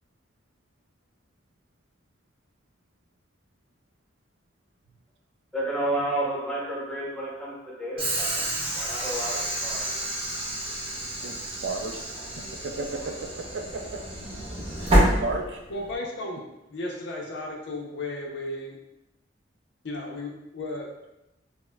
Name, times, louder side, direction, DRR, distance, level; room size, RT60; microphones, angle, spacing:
voice 1, 5.5-8.5 8.7-10.0, right 1 dB, 5° left, -6 dB, 0.8 m, -31 dB
Train / Sliding door, 8.0-15.9, right 1 dB, 30° right, 0.6 m, -28 dB
voice 2, 11.6-12.0 12.6-13.1 13.5-13.8 14.8-15.6, right 3 dB, 70° right, 3 dB, 0.4 m, -33 dB
voice 3, 15.7-18.8 19.8-20.9, left 2 dB, 65° left, 0 dB, 0.6 m, -34 dB
4.2 x 2.1 x 2.2 m, 0.92 s
head